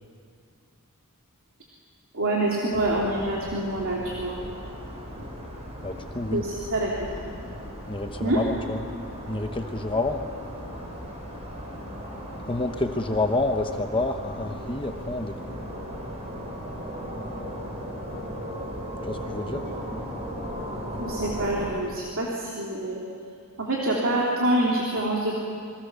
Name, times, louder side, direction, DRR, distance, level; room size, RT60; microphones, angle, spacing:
voice 1, 2.1-4.4 6.3-6.9 7.2-7.3 8.2-8.4 21.0-23.0 23.6-25.3, right 1 dB, 60° right, -4 dB, 3.4 m, -26 dB
sound 1, 2.7-21.7, equal, 30° right, 5.3 m, -37 dB
voice 2, 5.8-6.5 7.9-8.8 9.3-10.2 12.5-15.6 19.1-19.6, left 2 dB, 25° left, 5 dB, 1.0 m, -28 dB
28.0 x 23.5 x 6.9 m, 2.5 s
head